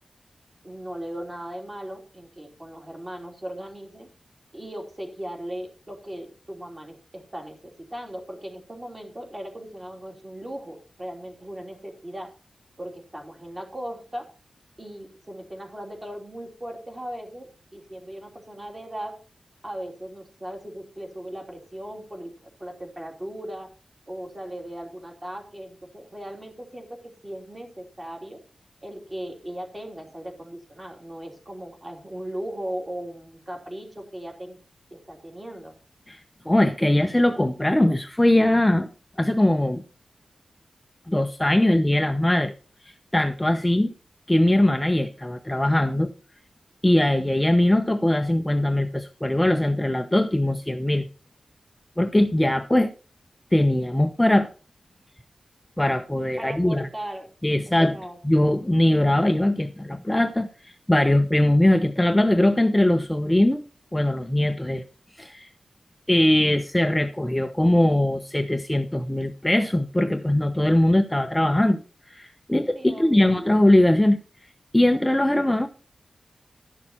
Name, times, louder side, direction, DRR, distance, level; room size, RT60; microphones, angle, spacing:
voice 1, 0.6-4.1 4.5-12.3 12.8-14.3 14.8-19.2 19.6-23.7 24.1-28.4 28.8-34.6 34.9-35.7 56.4-57.3 57.7-58.2 72.7-73.3, right 1 dB, 25° right, 3.2 m, -38 dB
voice 2, 36.5-38.9 39.2-39.8 41.1-42.5 43.1-43.9 44.3-46.1 46.8-51.0 52.0-52.9 53.5-54.5 55.8-56.9 57.4-58.0 58.2-63.6 63.9-64.8 65.2-65.5 66.1-71.8 72.1-74.2 74.7-75.7, left 1 dB, 10° left, 0.7 m, -21 dB
12.0 x 6.5 x 4.3 m
wide cardioid pair, 95°, 0 cm